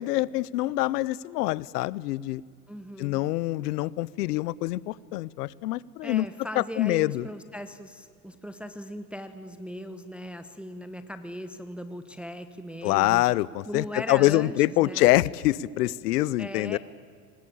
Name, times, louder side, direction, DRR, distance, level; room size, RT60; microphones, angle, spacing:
voice 1, 0.0-2.4 3.0-6.3 6.6-7.3 12.8-16.8, left 17 dB, 80° left, 23 dB, 0.8 m, -25 dB
voice 2, 2.7-3.2 6.0-13.2 13.7-15.1 16.4-16.8, equal, ahead, 9 dB, 0.8 m, -39 dB
23.5 x 19.0 x 8.6 m, 2.2 s
supercardioid pair, 120°, 47 cm